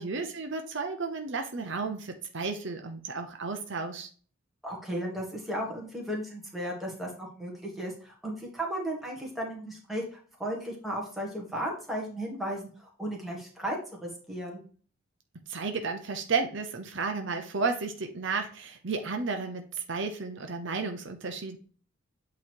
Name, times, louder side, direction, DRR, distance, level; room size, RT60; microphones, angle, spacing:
voice 1, 0.0-4.1 15.5-21.6, right 4 dB, 60° right, 5 dB, 0.7 m, -33 dB
voice 2, 4.6-14.6, right 1 dB, ahead, -3 dB, 1.6 m, -35 dB
8.3 x 3.1 x 4.5 m, 0.43 s
head